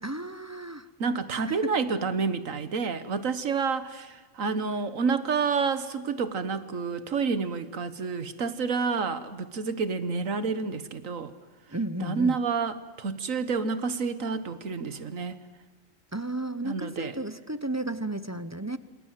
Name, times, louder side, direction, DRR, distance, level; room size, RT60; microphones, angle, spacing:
voice 1, 0.0-0.9 1.6-1.7 11.7-12.4 16.1-18.8, right 2 dB, 15° right, 13 dB, 0.8 m, -33 dB
voice 2, 1.0-11.3 12.0-15.4 16.6-17.2, right 5 dB, 85° right, 12 dB, 1.8 m, -29 dB
27.5 x 27.5 x 7.6 m, 1.2 s
omnidirectional pair, 1.3 m